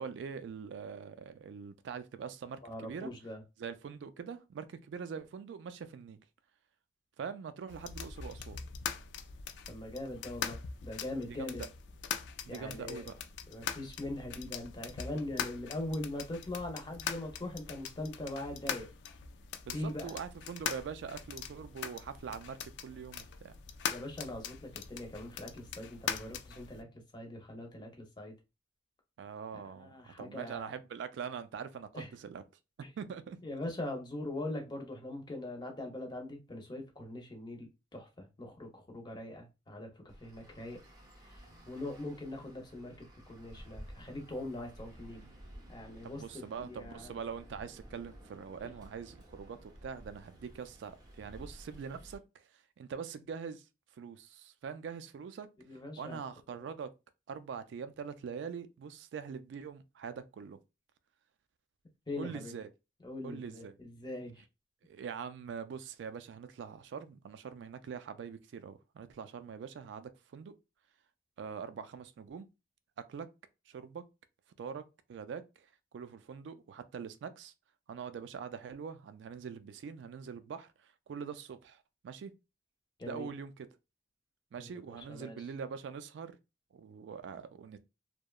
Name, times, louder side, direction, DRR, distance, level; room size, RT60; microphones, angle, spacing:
voice 1, 0.0-3.1 3.6-6.2 7.2-8.6 11.4-11.6 12.5-13.1 19.7-23.5 29.2-32.4 33.0-33.4 46.0-52.5 52.8-53.6 54.0-55.5 56.0-56.9 57.3-60.6 62.2-62.7 63.2-63.8 64.8-70.5 71.4-72.5 73.0-73.3 73.7-74.0 74.6-74.8 75.1-75.7 75.9-77.5 77.9-82.3 83.0-83.7 84.5-86.4 86.7-87.8, right 6 dB, 80° right, 0.3 m, -43 dB
voice 2, 2.6-3.4 9.7-11.7 12.5-13.1 13.5-18.9 19.7-20.2 23.9-26.9 27.1-28.3 29.5-30.7 31.9-32.1 32.8-32.9 33.4-40.8 41.2-45.3 45.7-47.1 55.6-56.2 62.1-62.5 63.0-64.4 83.0-83.3 84.6-84.7 85.1-85.4, left 1 dB, 25° left, 0.6 m, -42 dB
sound 1, 7.7-26.8, left 7 dB, 75° left, 0.3 m, -42 dB
Traffic noise roadway noise, 40.1-52.2, equal, 20° right, 0.5 m, -53 dB
2.7 x 2.1 x 2.3 m
head